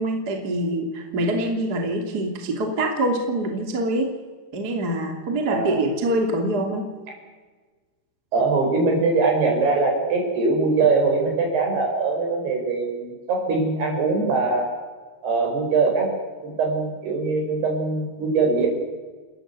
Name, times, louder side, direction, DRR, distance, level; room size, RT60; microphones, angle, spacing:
voice 1, 0.0-4.1 4.5-6.9, right 1 dB, 30° right, 3 dB, 2.1 m, -25 dB
voice 2, 5.5-5.8 8.3-14.7 15.2-16.1 16.4-18.7, right 3 dB, 50° right, 1 dB, 7.0 m, -22 dB
29.5 x 14.0 x 8.3 m, 1.3 s
omnidirectional pair, 5.9 m